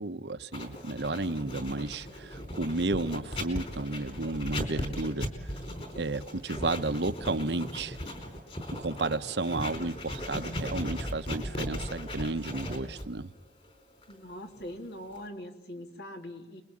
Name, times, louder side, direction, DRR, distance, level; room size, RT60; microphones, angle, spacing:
voice 1, 0.0-5.3 6.0-8.0 8.7-13.3, right 2 dB, 80° right, 1.0 m, -32 dB
Writing, 0.5-15.3, left 1 dB, 35° left, 4.5 m, -38 dB
voice 2, 14.1-16.6, left 1 dB, 70° left, 3.1 m, -42 dB
28.5 x 22.0 x 8.7 m
head